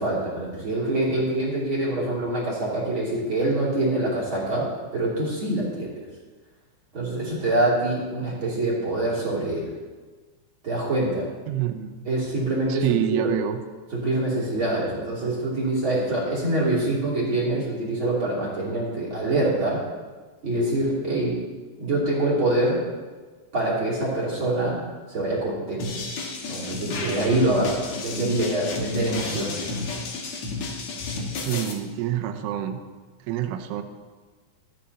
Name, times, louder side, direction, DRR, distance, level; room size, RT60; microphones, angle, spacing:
voice 1, 0.0-4.6 4.9-5.9 6.9-9.7 10.6-11.3 12.0-12.8 13.1-13.3 13.9-19.8 20.4-21.3 21.8-22.8 23.5-24.8 25.1-25.9 26.5-29.7, right 2 dB, 30° right, -7 dB, 2.7 m, -25 dB
voice 2, 11.5-11.9 12.7-13.6 31.5-32.8 33.3-33.8, right 11 dB, 80° right, 6 dB, 3.2 m, -27 dB
sound 1, 25.8-31.7, left 3 dB, 85° left, 1.5 m, -32 dB
25.5 x 8.9 x 2.8 m, 1.4 s
omnidirectional pair, 5.7 m